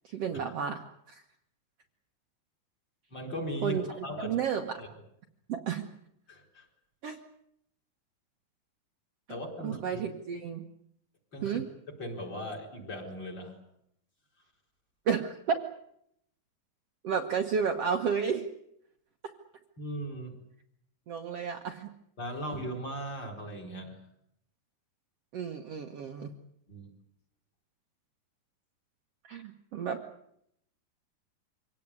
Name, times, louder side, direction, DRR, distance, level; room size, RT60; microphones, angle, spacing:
voice 1, 0.0-1.2 3.6-4.8 5.5-5.9 7.0-7.2 9.6-10.6 11.4-11.6 15.0-15.6 17.0-18.5 21.1-21.9 25.3-26.3 29.2-30.0, right 7 dB, 75° right, 4 dB, 1.4 m, -32 dB
voice 2, 3.1-4.4 4.8-4.9 6.3-6.7 9.3-10.0 11.3-11.6 12.0-13.6 19.8-20.4 22.2-24.0 26.7-26.9, equal, 25° left, 5 dB, 4.6 m, -38 dB
25.0 x 18.0 x 9.7 m, 0.75 s
omnidirectional pair, 4.7 m